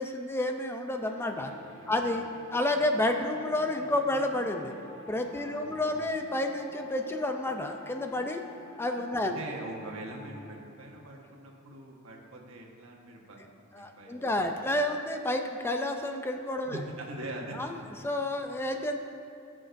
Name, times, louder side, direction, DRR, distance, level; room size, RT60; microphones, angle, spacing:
voice 1, 0.0-1.5 1.9-2.3 2.5-4.7 5.1-8.4 8.8-9.4 13.7-16.8 17.6-17.7 18.0-19.0, left 1 dB, 10° left, 5 dB, 0.4 m, -30 dB
sound 1, 1.0-10.5, left 2 dB, 70° left, 1.3 m, -49 dB
voice 2, 1.5-2.0 5.3-5.8 9.2-14.7 16.7-18.1, right 1 dB, 85° right, -1 dB, 1.3 m, -43 dB
18.5 x 6.3 x 2.6 m, 2.5 s
head